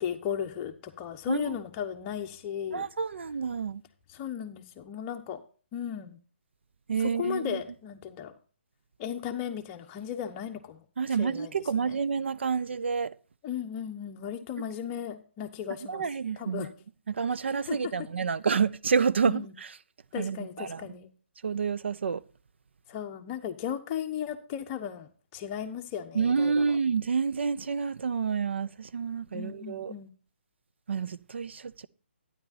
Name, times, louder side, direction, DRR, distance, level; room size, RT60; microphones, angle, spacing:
voice 1, 0.0-2.9 4.1-5.4 5.7-6.2 7.0-8.3 9.0-12.0 13.4-16.0 16.4-16.7 17.7-18.1 19.3-19.5 20.1-21.1 22.9-26.8 29.3-30.1, left 9 dB, 25° left, 0.9 m, -36 dB
voice 2, 2.7-3.8 6.9-7.6 11.0-13.1 15.9-16.7 17.1-19.7 20.2-20.8 21.4-22.2 26.1-29.9 30.9-31.9, right 6 dB, 70° right, 0.5 m, -29 dB
11.5 x 9.9 x 2.6 m
hypercardioid pair, 150°, 6 cm